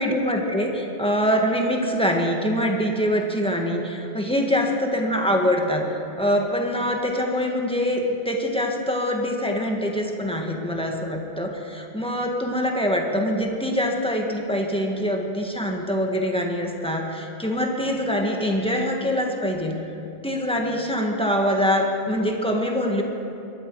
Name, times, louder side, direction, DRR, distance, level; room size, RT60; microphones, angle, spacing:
voice 1, 0.0-5.9 6.2-19.8 20.2-23.0, equal, 5° left, 1 dB, 1.7 m, -24 dB
22.0 x 13.0 x 4.8 m, 2.9 s
omnidirectional pair, 1.0 m